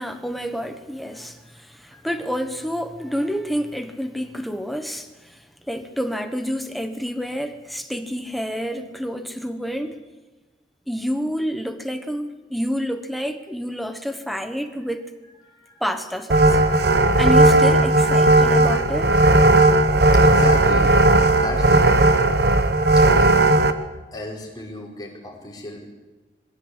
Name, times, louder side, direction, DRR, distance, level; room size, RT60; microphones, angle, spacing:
voice 1, 0.0-10.0 10.9-15.1 15.8-16.6 17.2-19.1, equal, ahead, 7 dB, 1.2 m, -28 dB
voice 2, 15.4-15.8 20.2-20.9 21.3-22.3 23.1-23.5 24.1-25.8, left 2 dB, 25° left, -2 dB, 4.9 m, -34 dB
sound 1, 16.3-23.7, right 2 dB, 60° right, 1.1 m, -15 dB
21.5 x 16.0 x 8.1 m, 1.2 s
head